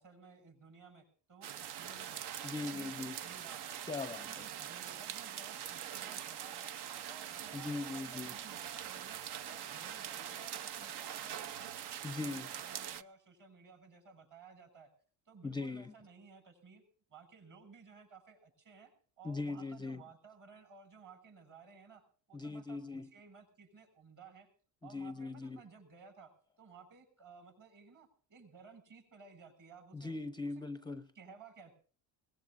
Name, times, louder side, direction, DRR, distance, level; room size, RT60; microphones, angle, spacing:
voice 1, 0.0-2.2 2.5-3.8 4.1-6.8 7.1-11.8 12.0-14.9 15.3-16.8 17.1-24.5 24.8-26.3 26.6-30.1 31.1-31.7, right 5 dB, 45° right, 6.8 m, -57 dB
sound 1, 1.4-13.0, right 10 dB, 60° right, 0.9 m, -43 dB
voice 2, 2.4-3.2 3.9-4.5 7.5-8.3 12.0-12.5 15.4-15.9 19.2-20.0 22.3-23.1 24.8-25.6 29.9-31.1, left 3 dB, 10° left, 0.6 m, -40 dB
22.0 x 19.0 x 2.6 m
cardioid pair, 95°, 44 cm